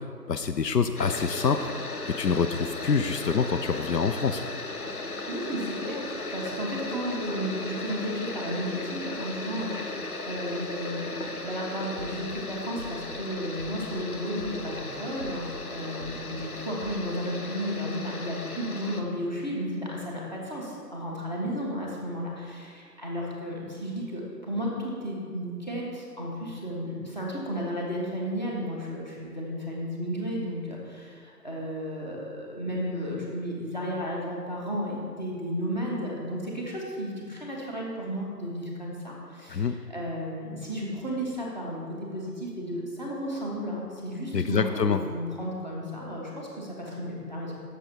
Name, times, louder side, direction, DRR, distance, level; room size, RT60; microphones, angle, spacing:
voice 1, 0.3-1.7 2.1-4.4 39.5-39.8 44.3-45.0, left 6 dB, 75° left, 8 dB, 0.6 m, -26 dB
sound 1, 0.9-19.0, left 2 dB, 60° left, 0.9 m, -36 dB
voice 2, 5.0-47.6, equal, 25° left, -3 dB, 1.2 m, -33 dB
sound 2, 12.0-12.4 12.8-13.2 13.6-14.0 14.4-14.8 15.2-15.6 16.0-16.4 16.8-17.0, equal, 45° right, 0.5 m, -42 dB
8.1 x 7.0 x 4.5 m, 2.3 s
figure-of-eight pair, 170°, 49 cm